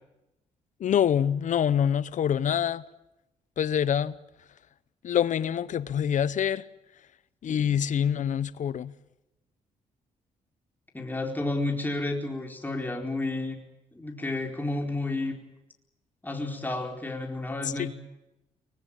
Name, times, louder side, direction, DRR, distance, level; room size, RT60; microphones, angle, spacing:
voice 1, 0.8-2.8 3.6-4.2 5.0-6.7 7.4-8.9 17.6-17.9, left 9 dB, 60° left, 0.9 m, -25 dB
voice 2, 10.9-13.6 13.9-15.3 16.2-17.9, left 2 dB, 15° left, 4.3 m, -31 dB
24.0 x 20.0 x 8.9 m
cardioid pair, 75°, 14 cm